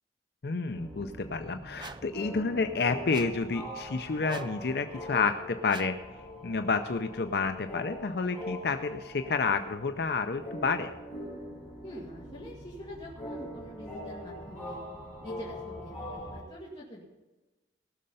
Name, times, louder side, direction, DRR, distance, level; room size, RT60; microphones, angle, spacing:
voice 1, 0.4-6.0 6.4-10.9, left 4 dB, 60° left, 7 dB, 0.5 m, -30 dB
sound 1, 0.7-16.4, left 1 dB, 5° left, 4.7 m, -42 dB
sound 2, 1.8-2.1 3.1-3.5 4.3-4.6 5.7-6.0, right 5 dB, 25° right, 0.3 m, -45 dB
voice 2, 11.8-14.8 15.2-17.0, left 1 dB, 25° left, -7 dB, 2.2 m, -45 dB
18.5 x 6.5 x 5.5 m, 1.1 s
head